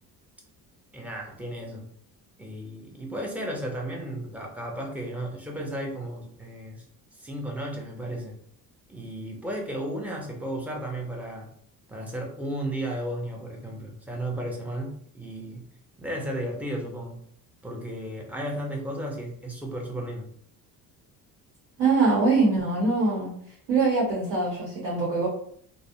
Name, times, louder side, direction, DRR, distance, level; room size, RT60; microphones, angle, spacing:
voice 1, 0.9-1.8 2.4-6.8 7.2-8.4 8.9-11.5 11.9-15.6 16.0-17.2 17.6-20.3, right 1 dB, 5° right, 0 dB, 0.4 m, -34 dB
voice 2, 21.8-23.3 23.7-25.3, right 3 dB, 85° right, -4 dB, 1.0 m, -23 dB
2.5 x 2.0 x 2.6 m, 0.63 s
cardioid pair, 125°, 38 cm